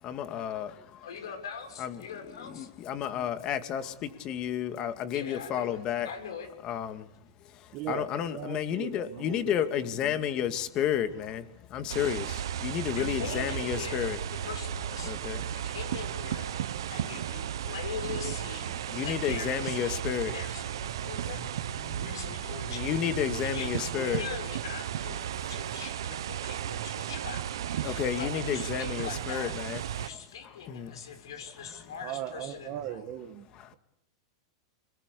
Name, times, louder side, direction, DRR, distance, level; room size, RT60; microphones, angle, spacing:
voice 1, 0.0-1.1 1.8-2.1 2.4-6.1 6.6-7.1 7.4-14.2 15.0-15.7 18.7-20.3 20.9-21.1 21.8-22.2 22.7-24.3 25.3-25.5 27.8-30.1 30.7-31.0 31.6-31.7 33.5-33.8, left 9 dB, 35° left, 2.3 m, -32 dB
voice 2, 1.0-2.7 5.1-5.8 6.0-6.5 12.9-15.2 15.5-16.6 16.9-21.5 21.8-22.9 23.4-33.0, left 6 dB, 90° left, 6.6 m, -42 dB
voice 3, 7.7-9.9 32.0-33.5, right 12 dB, 45° right, 1.8 m, -38 dB
sound 1, 11.9-30.1, right 10 dB, 80° right, 1.0 m, -35 dB
25.5 x 21.5 x 8.5 m
supercardioid pair, 140°, 2 cm